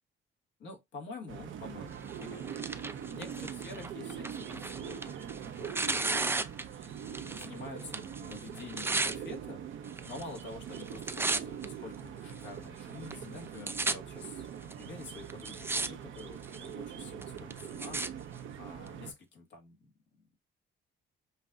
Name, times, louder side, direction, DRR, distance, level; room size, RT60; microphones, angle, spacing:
voice 1, 0.6-2.5 3.1-5.2 5.6-6.2 7.1-9.6 10.1-14.5 14.7-19.9, left 3 dB, 65° left, 1.5 m, -47 dB
sound 1, 1.3-19.1, right 8 dB, 75° right, 0.8 m, -43 dB
Tearing, 2.1-7.5 7.8-9.2 9.9-10.4 10.7-11.6 12.3-12.4 13.1-13.2 13.4-13.9 14.7-14.8 15.3-15.9 16.2-16.7 17.2-18.1 18.9-19.0, right 3 dB, 10° right, 0.4 m, -35 dB
5.3 x 2.6 x 2.3 m
cardioid pair, 90°, 20 cm